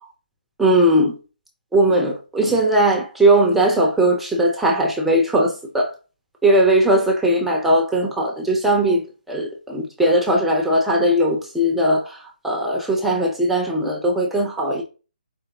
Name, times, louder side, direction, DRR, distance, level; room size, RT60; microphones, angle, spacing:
voice 1, 0.6-1.2 1.7-5.9 6.4-14.8, right 1 dB, 5° right, 0.7 m, -19 dB
5.0 x 3.3 x 2.9 m
figure-of-eight pair, 145°, 5 cm